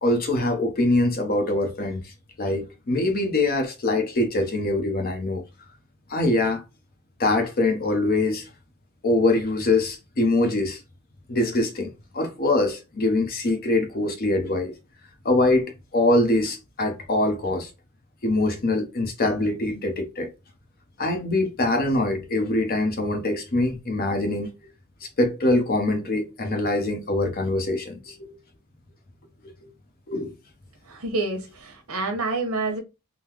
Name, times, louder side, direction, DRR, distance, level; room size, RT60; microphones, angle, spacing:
voice 1, 0.0-2.1 2.4-5.4 6.1-6.6 7.2-8.5 9.0-10.8 11.3-14.7 15.2-17.7 18.2-20.3 21.0-24.5 25.2-28.3 30.1-30.3, left 2 dB, 40° left, 0.7 m, -23 dB
voice 2, 30.9-32.8, right 3 dB, 70° right, 1.0 m, -28 dB
3.8 x 2.0 x 2.9 m
head